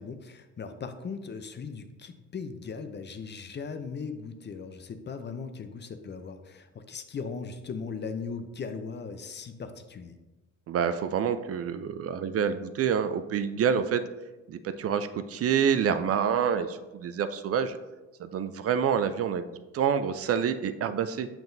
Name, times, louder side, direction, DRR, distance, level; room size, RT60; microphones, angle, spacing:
voice 1, 0.0-10.2, left 5 dB, 35° left, 9 dB, 0.6 m, -38 dB
voice 2, 10.7-14.0 14.5-17.8 18.2-21.3, right 7 dB, 50° right, 11 dB, 0.5 m, -27 dB
7.0 x 5.8 x 2.6 m, 1.1 s
cardioid pair, 90°, 30 cm